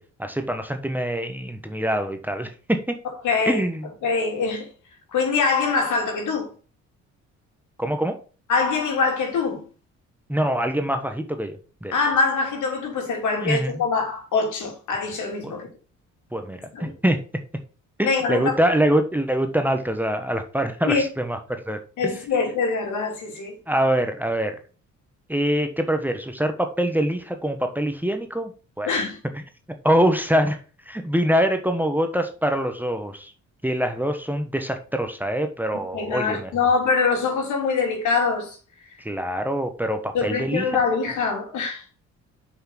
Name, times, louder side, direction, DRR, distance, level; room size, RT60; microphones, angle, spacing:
voice 1, 0.2-3.0 3.5-3.9 7.8-8.2 10.3-11.5 11.8-11.9 13.4-13.8 15.4-15.5 16.3-17.2 18.0-22.2 23.7-24.6 25.3-28.5 28.8-28.9 29.8-30.6 30.9-33.3 33.6-36.5 39.0-40.6, right 1 dB, 5° right, 1.2 m, -24 dB
voice 2, 3.2-3.6 4.0-4.7 5.1-6.5 8.5-9.6 11.9-15.7 16.7-16.9 18.0-18.5 20.8-21.0 22.0-23.5 28.8-29.2 35.9-38.6 40.1-41.8, left 4 dB, 75° left, 3.3 m, -23 dB
6.1 x 5.5 x 5.8 m
cardioid pair, 90°, 30 cm